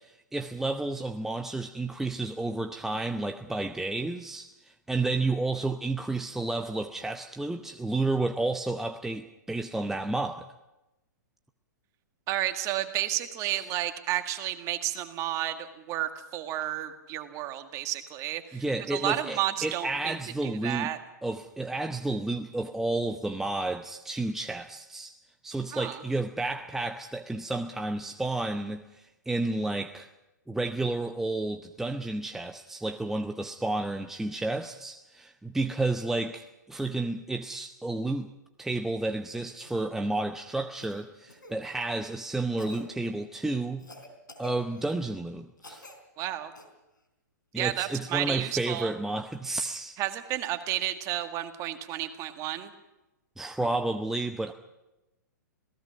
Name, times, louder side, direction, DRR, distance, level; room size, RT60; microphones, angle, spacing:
voice 1, 0.0-10.5 13.5-13.6 18.5-20.9 21.2-25.1 25.4-30.1 30.5-38.3 38.6-43.9 44.4-45.9 47.5-50.0 53.4-54.5, right 2 dB, 5° right, 6 dB, 0.7 m, -31 dB
voice 2, 12.3-20.2 20.4-21.0 25.7-26.0 46.2-46.5 47.6-48.9 50.0-52.7, right 13 dB, 30° right, 7 dB, 1.9 m, -31 dB
Cough, 39.6-39.9 40.8-41.5 42.6-42.9 43.8-45.0 45.6-46.0 46.5-46.6 48.5-48.6, equal, 85° left, 4.2 m, -47 dB
27.0 x 18.5 x 6.0 m, 0.98 s
figure-of-eight pair, 115°, 10 cm